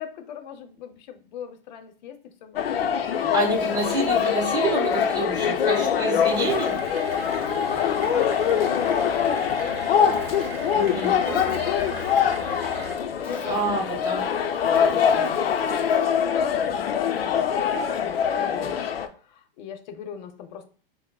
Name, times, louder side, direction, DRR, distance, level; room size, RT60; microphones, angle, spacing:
voice 1, 0.0-2.7 3.5-4.0 5.1-6.6 6.9-10.3 10.6-12.8 14.6-18.9 19.2-20.6, left 9 dB, 50° left, 8 dB, 0.7 m, -39 dB
sound 1, 2.6-19.1, left 8 dB, 90° left, 0.5 m, -24 dB
Insect, 2.9-5.1 6.2-8.3 10.0-10.8 11.2-12.4 13.0-16.3, right 2 dB, 5° left, 0.7 m, -43 dB
voice 2, 3.3-6.7 10.7-11.1 13.5-14.2 14.9-15.3, right 2 dB, 15° right, -4 dB, 1.7 m, -27 dB
sound 2, 6.4-13.0, right 4 dB, 85° right, 0.8 m, -39 dB
5.7 x 2.0 x 2.2 m, 0.43 s
hypercardioid pair, 130°, 29 cm